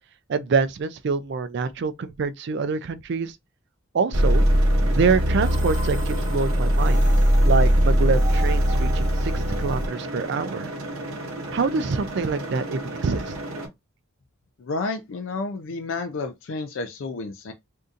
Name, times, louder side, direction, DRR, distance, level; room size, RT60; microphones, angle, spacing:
voice 1, 0.3-3.3 3.9-4.5 4.9-7.0 7.5-9.3 9.6-10.7 11.5-13.3, right 4 dB, 55° right, 0.3 m, -25 dB
sound 1, 4.1-9.9, equal, 40° right, 1.3 m, -20 dB
sound 2, 4.1-13.7, right 1 dB, 80° right, 0.8 m, -34 dB
voice 2, 14.6-17.5, left 3 dB, 65° left, 0.4 m, -31 dB
3.7 x 2.7 x 2.4 m
head